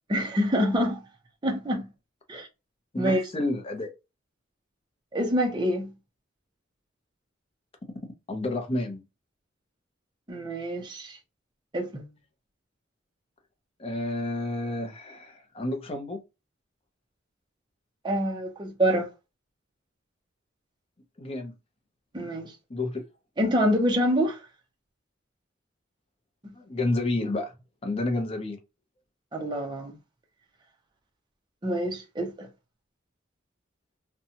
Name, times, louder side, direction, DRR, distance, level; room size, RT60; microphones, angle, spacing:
voice 1, 0.1-1.0 1.4-1.9 2.3-2.5 3.0-3.2 5.1-5.9 10.3-11.2 11.7-12.1 18.0-19.1 22.1-22.5 23.4-24.4 26.4-26.5 29.3-30.0 31.6-32.5, equal, 25° right, 0.6 m, -26 dB
voice 2, 2.9-3.9 8.3-9.0 13.8-16.2 21.2-21.5 22.7-23.0 26.5-27.5 27.8-28.6, left 2 dB, 30° left, 0.6 m, -30 dB
2.7 x 2.2 x 2.7 m
head